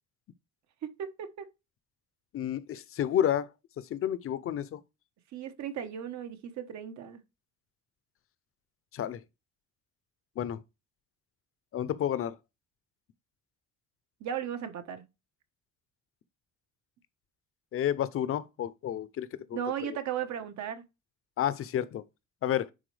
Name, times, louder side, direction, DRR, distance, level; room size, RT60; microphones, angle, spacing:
voice 1, 0.8-1.5 5.3-7.2 14.2-15.0 19.5-20.8, right 9 dB, 70° right, 1.3 m, -36 dB
voice 2, 2.3-3.5 3.8-4.8 8.9-9.2 10.4-10.6 11.7-12.3 17.7-19.6 21.4-22.0 22.4-22.7, left 10 dB, 50° left, 0.6 m, -30 dB
10.0 x 4.2 x 3.3 m
cardioid pair, 155°, 29 cm